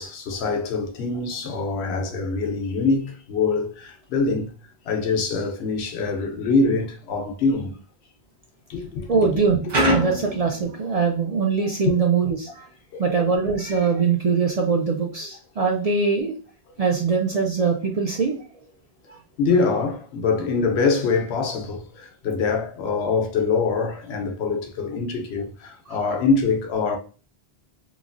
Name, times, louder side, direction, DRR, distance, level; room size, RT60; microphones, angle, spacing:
voice 1, 0.0-4.5 4.8-7.8 8.7-9.3 19.4-27.0, left 4 dB, 85° left, 0.9 m, -24 dB
voice 2, 9.1-12.7 13.0-16.4 16.8-18.4 19.1-19.2 25.9-26.0, right 5 dB, 50° right, 0.4 m, -22 dB
sound 1, 9.7-11.3, equal, 90° right, 1.4 m, -24 dB
3.1 x 2.3 x 2.4 m
omnidirectional pair, 1.1 m